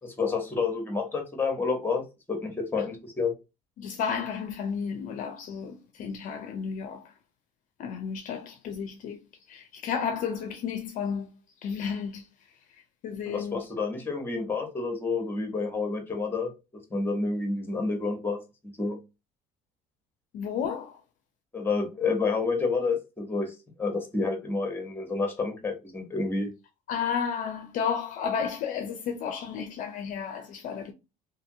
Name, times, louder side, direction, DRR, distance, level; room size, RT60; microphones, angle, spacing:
voice 1, 0.0-2.0 2.3-3.3 13.3-16.5 16.9-18.4 18.8-19.0 21.5-23.5 23.8-26.5, left 4 dB, 10° left, 1.0 m, -29 dB
voice 2, 3.8-7.1 7.8-9.2 9.5-11.3 11.6-12.3 13.0-13.6 20.3-21.0 26.9-30.9, left 7 dB, 55° left, 0.5 m, -32 dB
2.6 x 2.6 x 2.6 m
cardioid pair, 125°, 16 cm